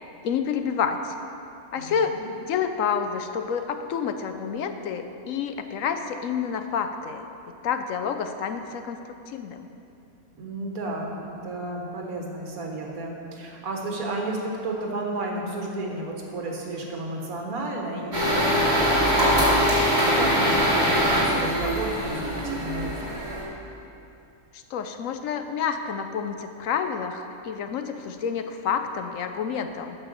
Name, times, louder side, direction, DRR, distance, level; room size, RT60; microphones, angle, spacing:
voice 1, 0.2-1.1 1.7-2.2 2.4-7.3 7.6-9.0 9.3-9.7 24.5-30.0, left 7 dB, 70° left, 7 dB, 0.9 m, -29 dB
voice 2, 1.7-2.2 10.3-23.3, right 2 dB, 70° right, 0 dB, 1.8 m, -32 dB
sound 1, 18.1-23.4, equal, 30° right, 2.6 m, -22 dB
8.7 x 6.9 x 6.4 m, 2.7 s
omnidirectional pair, 1.6 m